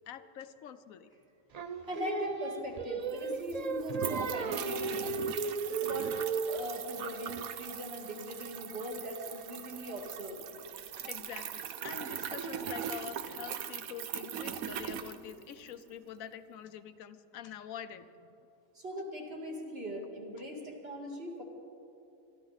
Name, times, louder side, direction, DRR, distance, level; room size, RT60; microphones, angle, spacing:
voice 1, 0.1-1.1 11.1-18.3, left 9 dB, 75° left, 12 dB, 1.1 m, -46 dB
Singing, 1.5-6.7, right 4 dB, 60° right, 0.4 m, -35 dB
voice 2, 1.8-5.3 5.7-6.1 6.5-10.4 18.7-21.4, equal, 45° right, 0 dB, 2.5 m, -40 dB
sound 1, 2.8-2.9 3.0-15.8, right 8 dB, 80° right, 1.2 m, -40 dB
23.0 x 13.0 x 4.0 m, 2.7 s
omnidirectional pair, 1.5 m